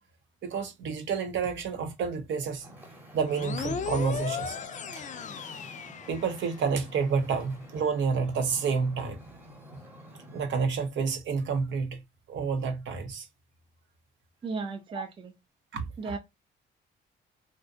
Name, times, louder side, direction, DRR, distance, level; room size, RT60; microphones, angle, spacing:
voice 1, 0.4-2.7 3.1-4.6 4.9-5.1 6.1-9.2 9.7-9.8 10.3-12.0 12.3-13.3 14.9-15.1 15.7-16.2, right 5 dB, 70° right, 0.6 m, -29 dB
Wind / Ocean, 2.6-10.5, equal, 10° right, 0.9 m, -50 dB
sound 1, 3.3-6.8, left 7 dB, 40° left, 0.4 m, -36 dB
voice 2, 14.4-15.3 16.0-16.2, right 4 dB, 25° right, 0.4 m, -35 dB
2.6 x 2.1 x 2.4 m
cardioid pair, 90°, 20 cm